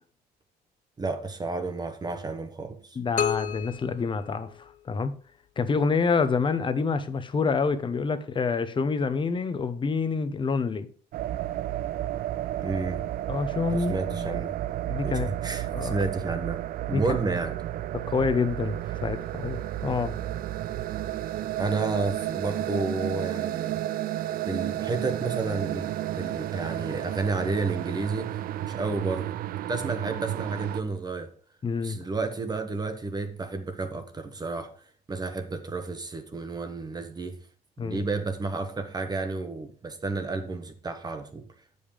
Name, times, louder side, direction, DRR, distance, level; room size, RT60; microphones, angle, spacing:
voice 1, 1.0-3.0 12.6-13.0 13.7-14.5 15.0-16.6 16.9-17.6 21.6-23.8 24.4-29.3 29.7-31.3 31.8-34.7 35.1-37.4 37.8-41.4, right 3 dB, 25° right, 1.0 m, -31 dB
voice 2, 2.9-4.5 4.8-5.1 5.6-10.9 13.3-14.4 14.9-15.3 15.7-16.0 16.9-17.0 18.1-20.1 31.6-32.0 37.8-38.0, left 4 dB, 30° left, 0.9 m, -27 dB
sound 1, 3.2-5.1, left 10 dB, 50° left, 0.6 m, -32 dB
sound 2, 11.1-30.8, right 13 dB, 60° right, 0.4 m, -32 dB
8.4 x 5.5 x 5.1 m
cardioid pair, 110°, 17 cm